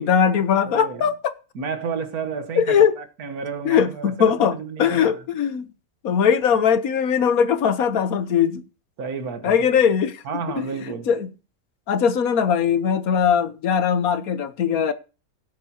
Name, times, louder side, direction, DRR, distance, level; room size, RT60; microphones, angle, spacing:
voice 1, 0.0-1.3 2.6-2.9 3.6-5.6 6.0-8.6 9.4-10.2 11.1-11.3 11.9-14.9, left 7 dB, 75° left, 1.4 m, -20 dB
voice 2, 0.6-1.1 1.5-5.2 9.0-9.7 10.2-11.1, right 5 dB, 85° right, 1.7 m, -31 dB
18.0 x 8.1 x 2.9 m
omnidirectional pair, 1.5 m